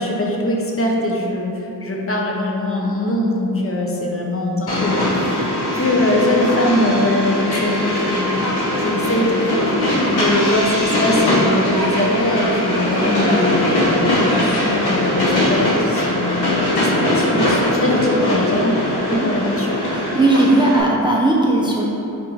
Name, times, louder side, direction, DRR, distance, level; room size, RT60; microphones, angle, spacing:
voice 1, 0.0-8.4 8.8-18.8 19.1-19.8, left 1 dB, 35° left, -2 dB, 0.6 m, -22 dB
Train, 4.7-20.8, left 1 dB, 80° left, 0.9 m, -20 dB
voice 2, 19.9-21.8, right 2 dB, 15° right, -4 dB, 0.4 m, -17 dB
3.6 x 2.6 x 4.5 m, 3.0 s
cardioid pair, 65°, 39 cm